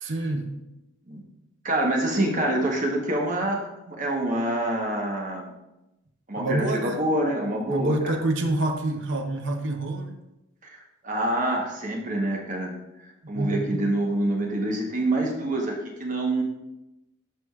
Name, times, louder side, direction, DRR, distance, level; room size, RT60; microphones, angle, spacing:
voice 1, 0.0-0.5 6.4-7.0 7.7-10.2 13.3-13.9, right 2 dB, 60° right, 4 dB, 0.8 m, -27 dB
voice 2, 1.6-5.5 6.3-8.1 10.6-10.8 11.0-12.8 13.3-15.7 16.0-16.4, right 1 dB, 35° right, 0 dB, 1.1 m, -26 dB
11.0 x 4.9 x 2.4 m, 0.92 s
head